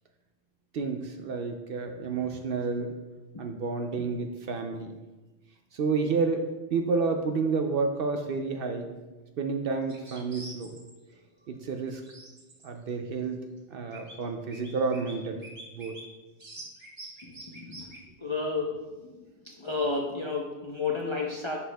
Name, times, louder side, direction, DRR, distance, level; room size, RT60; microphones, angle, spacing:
voice 1, 0.7-3.0 3.4-4.9 5.7-8.9 9.4-10.8 11.5-12.0 12.6-13.4 13.7-15.4 15.7-16.0, right 4 dB, 60° right, 5 dB, 0.7 m, -30 dB
sound 1, 9.9-10.9 12.0-12.9 13.6-13.7 13.9-14.2 14.5-15.1 15.4-16.0 16.4-18.0, right 2 dB, 35° right, 1.2 m, -45 dB
voice 2, 17.2-17.9 18.2-19.1 19.4-21.6, left 3 dB, 35° left, -2 dB, 0.5 m, -32 dB
11.0 x 4.5 x 2.2 m, 1.1 s
omnidirectional pair, 1.2 m